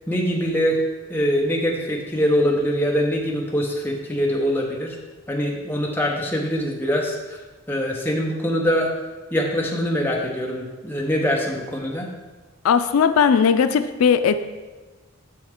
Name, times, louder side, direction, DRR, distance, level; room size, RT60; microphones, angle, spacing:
voice 1, 0.1-0.8 1.1-4.9 5.3-7.2 7.7-8.9 9.3-12.1, equal, 10° left, -1 dB, 0.9 m, -23 dB
voice 2, 12.6-14.4, left 6 dB, 90° left, 10 dB, 0.4 m, -18 dB
7.6 x 6.1 x 3.7 m, 1.3 s
head